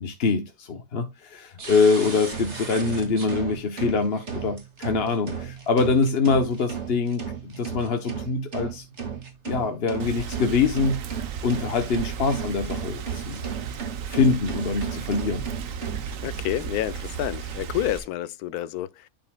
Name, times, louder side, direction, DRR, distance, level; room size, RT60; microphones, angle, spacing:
voice 1, 0.0-8.9 9.5-11.0 11.4-13.4 14.1-15.5, left 4 dB, 45° left, 1.0 m, -24 dB
sound 1, 1.6-16.6 17.0-17.1 17.5-18.1, right 6 dB, 50° right, 2.5 m, -35 dB
Rain, 10.0-18.0, right 7 dB, 65° right, 1.2 m, -35 dB
voice 2, 16.2-19.1, left 13 dB, 90° left, 1.1 m, -29 dB
11.5 x 5.3 x 2.2 m
omnidirectional pair, 1.6 m